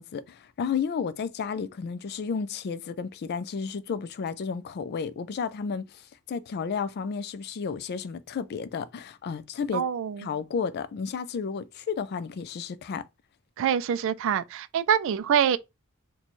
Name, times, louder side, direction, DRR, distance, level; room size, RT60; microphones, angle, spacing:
voice 1, 0.0-6.0 6.3-9.8 10.2-13.1, left 6 dB, 50° left, 0.3 m, -32 dB
voice 2, 9.7-10.3 13.6-15.6, right 8 dB, 65° right, 0.3 m, -25 dB
4.1 x 2.2 x 3.0 m
head